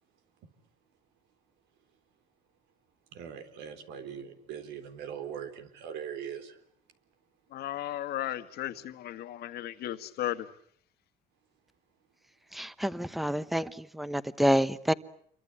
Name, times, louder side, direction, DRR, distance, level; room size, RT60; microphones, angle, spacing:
voice 1, 3.1-6.6, right 8 dB, 85° right, 4.0 m, -41 dB
voice 2, 7.5-10.5, left 13 dB, 70° left, 1.8 m, -35 dB
voice 3, 12.5-14.9, equal, ahead, 1.1 m, -28 dB
28.0 x 24.0 x 8.7 m
cardioid pair, 110°, 17 cm